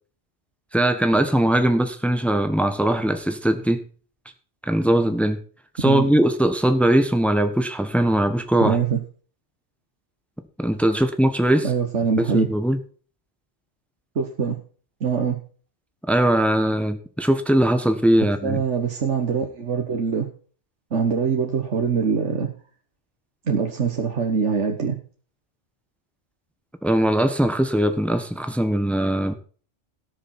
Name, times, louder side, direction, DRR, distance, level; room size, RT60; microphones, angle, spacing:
voice 1, 0.7-3.8 4.6-5.4 5.8-8.8 10.6-11.7 12.3-12.8 16.1-18.6 26.8-29.3, right 1 dB, ahead, 1.3 m, -20 dB
voice 2, 8.6-9.0 11.6-12.5 14.1-14.6 15.0-15.4 18.4-20.3 20.9-22.5 23.5-25.0, right 6 dB, 85° right, 1.7 m, -23 dB
17.5 x 7.0 x 4.4 m
omnidirectional pair, 1.2 m